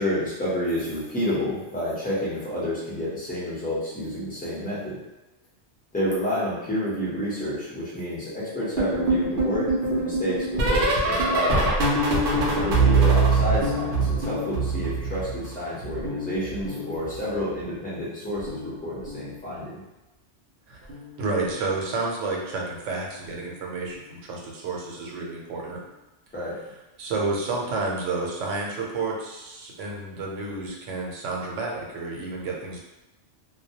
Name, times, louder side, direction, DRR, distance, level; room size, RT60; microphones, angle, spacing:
voice 1, 0.0-5.0 5.9-11.7 12.6-19.8 26.3-26.6, left 1 dB, 10° left, -8 dB, 0.6 m, -29 dB
sound 1, 8.8-15.5 15.8-17.4 18.4-18.7 19.0-19.3 20.9-21.2 21.5-21.7 23.3-23.4, right 2 dB, 60° right, 0.6 m, -24 dB
voice 2, 12.3-12.7 20.7-20.8 21.2-25.8 27.0-32.8, right 3 dB, 90° right, -2 dB, 0.9 m, -30 dB
2.2 x 2.1 x 2.7 m, 1.0 s
omnidirectional pair, 1.2 m